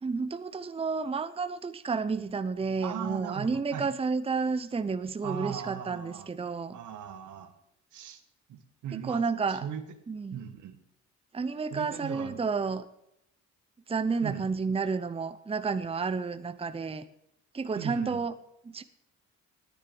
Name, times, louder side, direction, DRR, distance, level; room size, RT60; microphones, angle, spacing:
voice 1, 0.0-6.8 9.1-9.6 10.1-10.4 11.3-12.8 13.9-17.1 17.5-18.3 18.6-18.8, right 4 dB, 20° right, 9 dB, 0.7 m, -31 dB
voice 2, 2.8-3.9 5.2-6.3 6.7-7.5 7.9-8.2 8.5-9.2 9.5-9.8 10.3-10.8 11.7-12.4 14.2-14.5 17.8-18.2, right 9 dB, 80° right, 8 dB, 1.5 m, -38 dB
10.0 x 10.0 x 7.1 m, 0.77 s
cardioid pair, 90°, 30 cm